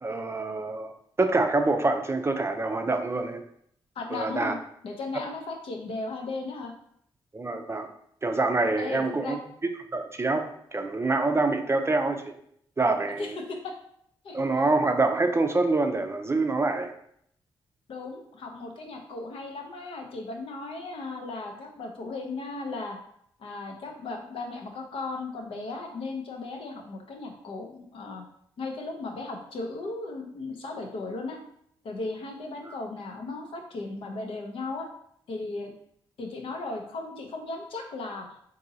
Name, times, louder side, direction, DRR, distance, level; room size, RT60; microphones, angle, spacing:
voice 1, 0.0-0.9 1.2-3.4 4.1-4.5 7.3-7.9 8.2-9.4 9.9-12.3 12.8-13.4 14.3-16.9, right 3 dB, 25° right, 6 dB, 0.5 m, -26 dB
voice 2, 4.0-4.6 4.8-6.7 8.8-9.4 13.2-13.7 14.2-14.4 17.9-23.0 23.4-28.2 28.6-31.4 31.8-34.9 35.3-35.7 36.2-38.3, left 3 dB, 70° left, 2 dB, 0.7 m, -36 dB
3.7 x 2.7 x 2.7 m, 0.69 s
supercardioid pair, 50°, 10 cm